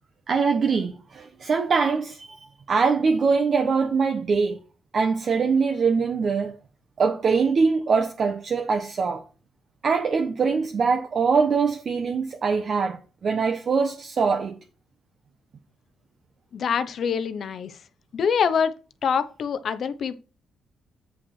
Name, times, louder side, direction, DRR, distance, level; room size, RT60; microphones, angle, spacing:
voice 1, 0.3-2.4 2.7-4.6 4.9-6.6 7.0-9.2 9.8-14.6, right 5 dB, 45° right, 1.0 m, -23 dB
voice 2, 16.5-17.8 18.1-18.7 19.0-20.2, left 6 dB, 55° left, 0.8 m, -25 dB
8.9 x 5.5 x 4.5 m
cardioid pair, 130°, 0 cm